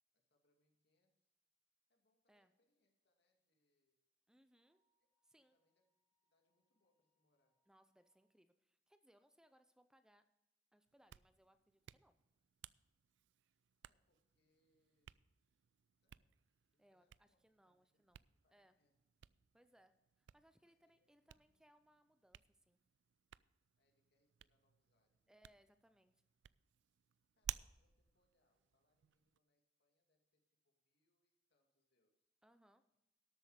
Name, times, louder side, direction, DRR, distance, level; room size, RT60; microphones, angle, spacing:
voice 1, 0.1-1.3 1.9-4.0 5.3-5.9 6.2-7.6 13.8-15.2 16.0-18.1 18.4-19.0 20.6-21.7 23.8-25.4 27.4-32.3, left 1 dB, 65° left, 2 dB, 2.4 m, -86 dB
voice 2, 4.3-4.8 5.3-5.5 7.7-10.3 10.7-12.2 16.8-18.2 18.5-18.8 19.5-22.8 25.3-26.2 32.4-32.8, equal, 5° right, 10 dB, 0.4 m, -72 dB
Wind instrument woodwind instrument, 4.5-8.4, equal, 30° right, 3.2 m, -93 dB
Hands, 10.9-29.4, right 12 dB, 90° right, 0.3 m, -57 dB
12.5 x 8.4 x 4.9 m, 0.92 s
head